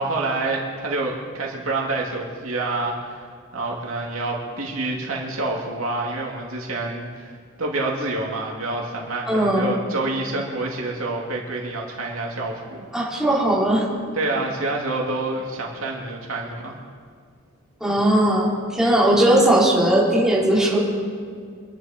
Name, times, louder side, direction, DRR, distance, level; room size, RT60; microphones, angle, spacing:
voice 1, 0.0-3.3 3.5-7.3 7.6-13.2 14.1-16.7 19.4-19.5, right 2 dB, 80° right, -1 dB, 2.5 m, -27 dB
voice 2, 9.3-9.8 12.9-13.9 17.8-20.8, right 1 dB, ahead, -7 dB, 4.0 m, -18 dB
25.5 x 11.0 x 4.4 m, 2.1 s
head